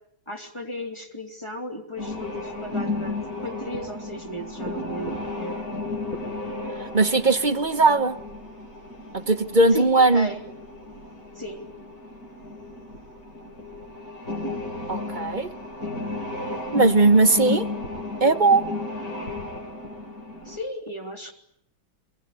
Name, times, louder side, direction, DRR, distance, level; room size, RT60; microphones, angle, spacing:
voice 1, 0.3-5.6 9.7-10.4 11.3-11.7 20.4-21.3, equal, 15° left, 3 dB, 3.2 m, -35 dB
sound 1, 2.0-20.6, left 2 dB, 40° left, 7.6 m, -34 dB
voice 2, 6.9-8.2 9.1-10.3 14.9-15.5 16.7-17.7 18.2-18.6, right 3 dB, 30° right, 7 dB, 1.0 m, -19 dB
27.0 x 22.0 x 9.7 m, 0.73 s
omnidirectional pair, 2.3 m